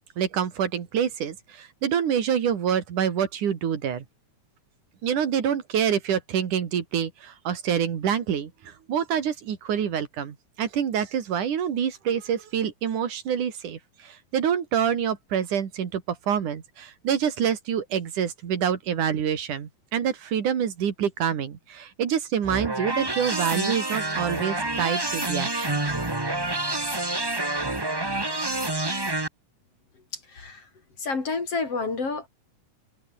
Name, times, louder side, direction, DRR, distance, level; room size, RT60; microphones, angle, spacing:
voice 1, 0.2-4.1 5.0-25.8, right 8 dB, 90° right, 3.9 m, -27 dB
sound 1, 22.4-29.3, right 2 dB, 15° right, 0.8 m, -28 dB
voice 2, 30.1-30.7 31.0-32.3, left 4 dB, 50° left, 5.0 m, -29 dB
open air
omnidirectional pair, 3.4 m